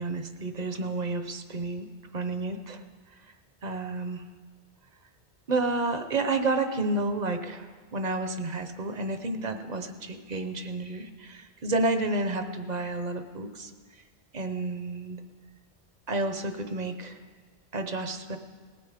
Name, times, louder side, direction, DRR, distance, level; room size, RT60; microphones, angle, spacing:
voice 1, 0.0-1.9 2.1-2.8 3.6-4.2 5.5-13.7 14.3-15.2 16.1-17.2 17.7-18.4, right 2 dB, 45° right, 8 dB, 0.8 m, -30 dB
19.0 x 9.3 x 5.0 m, 1.5 s
omnidirectional pair, 1.2 m